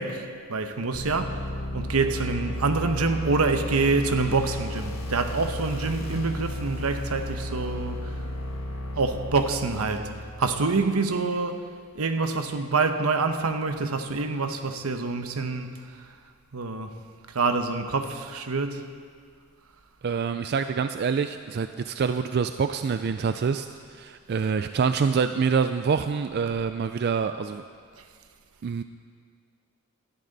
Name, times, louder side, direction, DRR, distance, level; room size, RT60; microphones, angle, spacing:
voice 1, 0.0-1.5 1.7-8.2 9.0-11.7 11.9-16.1 16.5-16.9 17.3-18.9, right 3 dB, 80° right, 0.9 m, -26 dB
sound 1, 0.9-10.8, left 1 dB, 65° left, 1.4 m, -34 dB
voice 2, 20.0-27.6 28.6-28.8, right 6 dB, 50° right, 0.3 m, -26 dB
17.0 x 12.5 x 4.0 m
head